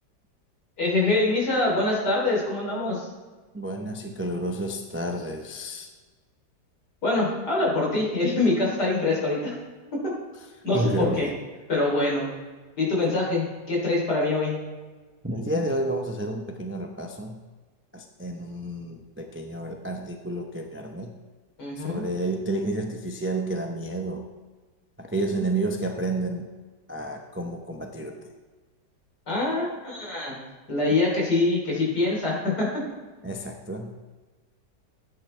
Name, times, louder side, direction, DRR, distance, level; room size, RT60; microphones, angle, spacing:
voice 1, 0.8-3.1 7.0-9.6 9.9-10.0 10.6-11.3 11.7-12.3 12.8-14.6 21.6-22.1 29.3-30.4 30.7-32.7, left 2 dB, 70° left, -3 dB, 4.1 m, -24 dB
voice 2, 3.5-5.9 10.7-11.3 15.2-17.4 17.9-21.1 21.8-24.3 25.0-26.5 26.9-28.2 33.2-33.9, right 1 dB, 15° right, 2 dB, 0.4 m, -30 dB
13.5 x 9.1 x 3.4 m, 1.3 s
omnidirectional pair, 1.8 m